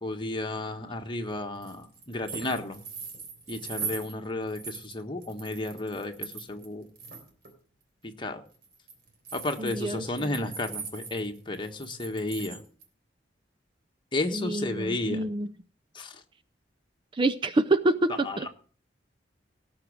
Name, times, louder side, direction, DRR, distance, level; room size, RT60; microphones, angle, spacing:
voice 1, 0.0-2.8 3.5-6.9 8.0-8.4 9.3-12.6 14.1-15.3 15.9-16.2 18.2-18.5, left 2 dB, 25° left, 5 dB, 1.5 m, -33 dB
sound 1, 1.6-4.1 4.5-6.7 6.9-7.5 8.5-12.8, right 5 dB, 55° right, 3.4 m, -40 dB
voice 2, 9.6-10.5 14.3-15.5 17.1-18.5, right 2 dB, 30° right, 11 dB, 0.5 m, -27 dB
17.5 x 6.1 x 6.4 m, 0.43 s
head